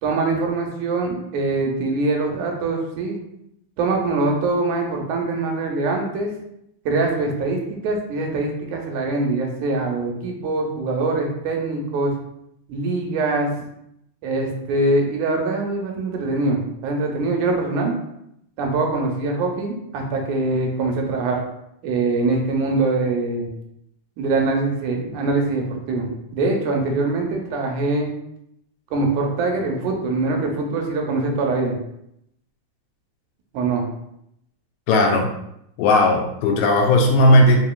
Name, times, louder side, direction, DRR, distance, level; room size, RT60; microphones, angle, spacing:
voice 1, 0.0-3.2 3.8-6.3 6.9-12.1 12.7-13.5 14.2-17.9 18.6-21.4 21.8-23.5 24.2-28.1 28.9-31.8 33.5-33.9, right 3 dB, 85° right, 1 dB, 2.2 m, -23 dB
voice 2, 34.9-35.3 35.8-37.6, left 1 dB, 80° left, 2 dB, 1.8 m, -16 dB
4.8 x 2.9 x 2.3 m, 0.77 s
omnidirectional pair, 3.4 m